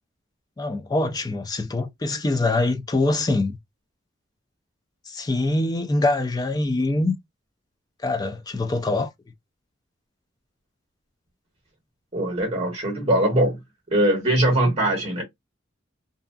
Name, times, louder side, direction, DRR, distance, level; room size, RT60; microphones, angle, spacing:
voice 1, 0.6-3.6 5.1-7.1 8.0-9.1, left 2 dB, 20° left, 0.4 m, -24 dB
voice 2, 12.1-13.6 13.9-15.2, right 1 dB, 35° right, 1.1 m, -21 dB
2.6 x 2.2 x 2.4 m
head